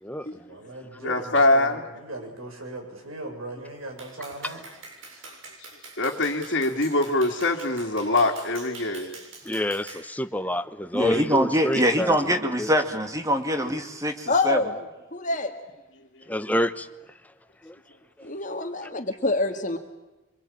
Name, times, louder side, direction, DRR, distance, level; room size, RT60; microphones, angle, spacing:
voice 1, 0.3-4.6 5.1-5.3, right 2 dB, 90° right, 3 dB, 7.0 m, -39 dB
voice 2, 1.0-1.8 6.0-9.2, left 2 dB, 55° left, -5 dB, 2.5 m, -23 dB
Clapping, 4.0-10.1, right 3 dB, 75° right, 7.4 m, -44 dB
voice 3, 9.4-12.2 12.6-12.7 16.3-16.9 17.6-17.8, equal, 5° left, 10 dB, 1.0 m, -28 dB
voice 4, 10.9-14.6, equal, 15° right, 6 dB, 2.3 m, -24 dB
voice 5, 14.3-14.7 15.1-15.5 18.2-19.8, left 2 dB, 40° left, 6 dB, 1.9 m, -26 dB
25.5 x 23.5 x 8.7 m, 1.1 s
head